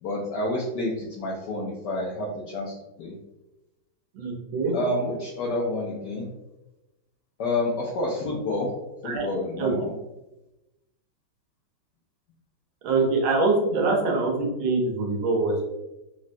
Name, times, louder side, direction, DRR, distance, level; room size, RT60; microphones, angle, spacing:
voice 1, 0.0-3.1 4.7-6.3 7.4-8.7 9.0-9.9, left 2 dB, 75° left, -4 dB, 0.9 m, -29 dB
voice 2, 4.1-4.8 9.0-9.3 9.6-9.7 12.8-15.6, right 3 dB, 75° right, -1 dB, 1.4 m, -24 dB
3.7 x 2.1 x 2.5 m, 0.97 s
omnidirectional pair, 2.3 m